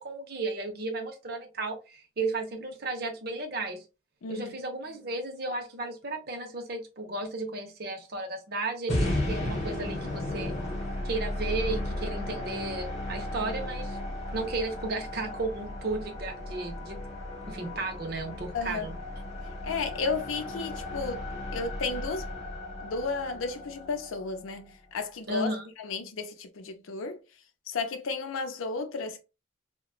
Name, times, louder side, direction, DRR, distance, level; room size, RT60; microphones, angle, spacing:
voice 1, 0.0-3.8 4.3-10.6 11.0-14.0 14.3-17.0 17.4-18.9 25.3-25.7, right 3 dB, 50° right, 0.6 m, -34 dB
voice 2, 4.2-4.5 18.5-18.9 19.6-21.2 21.5-22.3 22.8-25.5 25.8-27.2 27.7-29.2, left 4 dB, 85° left, 0.5 m, -33 dB
sound 1, 8.9-25.0, left 1 dB, 30° left, 0.9 m, -35 dB
2.9 x 2.1 x 2.4 m
head